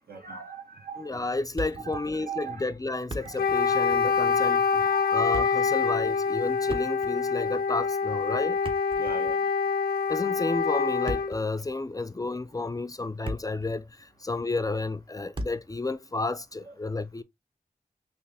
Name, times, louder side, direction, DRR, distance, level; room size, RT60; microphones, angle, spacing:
voice 1, 0.1-1.1 1.8-2.6 3.2-3.8 4.2-5.2 9.0-9.4 16.7-16.8, right 6 dB, 80° right, 1.3 m, -40 dB
voice 2, 1.0-8.6 10.1-17.2, left 3 dB, 25° left, 0.3 m, -31 dB
Thump thud, 1.6-2.1 2.3-2.4 2.9-3.6 3.9-4.1 5.1-5.7 6.6-7.3 8.5-9.4 10.8-11.5 12.2-12.4 12.9-13.7 14.0-14.1 15.3-15.8, right 1 dB, 35° right, 0.7 m, -37 dB
Wind instrument woodwind instrument, 3.4-11.4, left 5 dB, 90° left, 0.4 m, -26 dB
3.2 x 2.9 x 3.3 m
wide cardioid pair, 55°, 15 cm